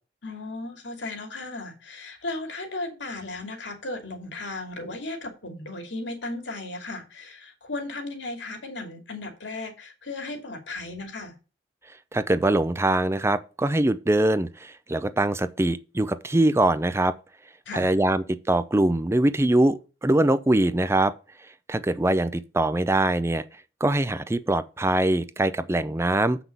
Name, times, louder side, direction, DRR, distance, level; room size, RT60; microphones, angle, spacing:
voice 1, 0.2-11.3 17.6-18.0, left 2 dB, 85° left, 2.6 m, -35 dB
voice 2, 12.1-17.1 17.7-21.1 21.7-23.4 23.8-26.4, right 1 dB, 15° right, 0.5 m, -23 dB
7.7 x 6.0 x 5.3 m
head